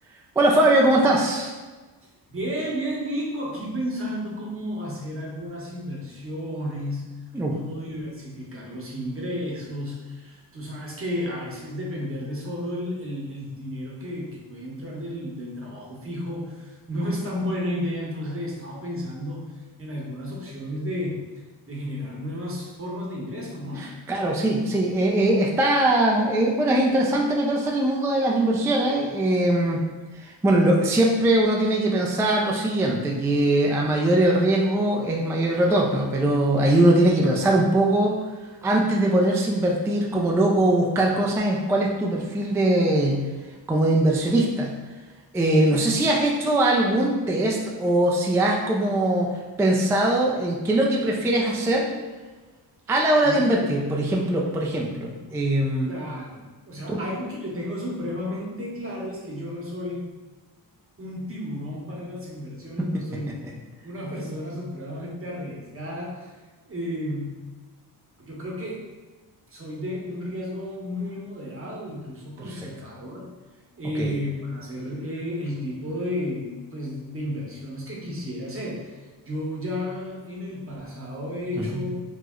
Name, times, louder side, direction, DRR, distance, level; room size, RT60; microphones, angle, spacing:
voice 1, 0.4-1.5 7.3-7.6 23.8-29.8 30.2-38.2 38.6-43.3 43.7-44.7 45.3-49.3 49.6-51.9 52.9-55.9 56.9-57.0 62.8-63.0 72.4-72.5 74.0-74.1 81.6-81.8, right 1 dB, 5° right, -1 dB, 0.3 m, -21 dB
voice 2, 2.3-7.2 7.5-19.5 19.8-21.3 21.6-23.9 53.2-53.7 55.9-60.1 61.0-63.4 63.8-66.4 66.6-67.4 68.2-68.8 69.5-73.3 73.8-81.9, equal, 30° right, -3 dB, 1.0 m, -32 dB
3.0 x 2.0 x 3.6 m, 1.3 s
cardioid pair, 70°, 42 cm